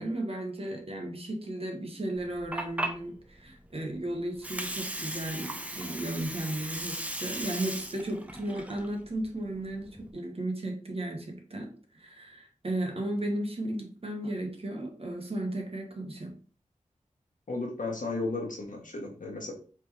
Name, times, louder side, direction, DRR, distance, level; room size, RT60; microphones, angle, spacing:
voice 1, 0.0-16.3, right 1 dB, 45° right, 2 dB, 1.2 m, -35 dB
Water, 2.2-10.1, right 1 dB, 10° right, 0.5 m, -38 dB
voice 2, 17.5-19.5, left 2 dB, 85° left, 0 dB, 1.2 m, -34 dB
4.2 x 3.3 x 3.2 m, 0.40 s
wide cardioid pair, 80°, 13 cm